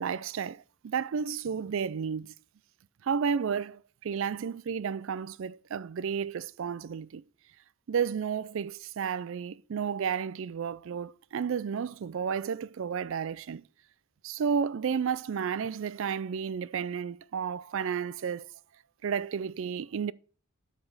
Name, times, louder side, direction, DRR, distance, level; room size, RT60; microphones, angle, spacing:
voice 1, 0.0-2.3 3.0-7.2 7.9-13.6 14.2-18.5 19.0-20.1, right 7 dB, 55° right, 0.3 m, -32 dB
8.1 x 5.1 x 5.4 m
head